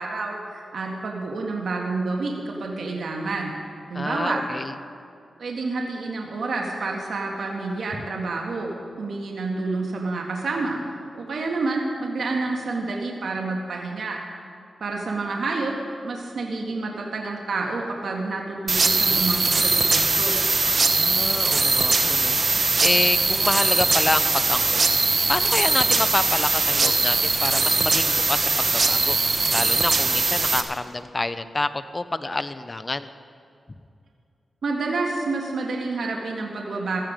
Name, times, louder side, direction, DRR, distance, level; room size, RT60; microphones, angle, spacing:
voice 1, 0.0-3.5 3.9-4.4 5.4-10.8 11.1-14.2 14.8-15.8 16.0-20.4 34.6-37.0, right 3 dB, 75° right, 0 dB, 1.7 m, -29 dB
voice 2, 3.9-4.7 21.0-22.4 22.8-24.8 25.3-29.2 29.5-33.1, left 2 dB, 30° left, 12 dB, 0.8 m, -27 dB
sound 1, 18.7-30.6, right 3 dB, 50° right, 1.3 m, -21 dB
16.5 x 13.5 x 5.2 m, 2.5 s
cardioid pair, 65°, 0 cm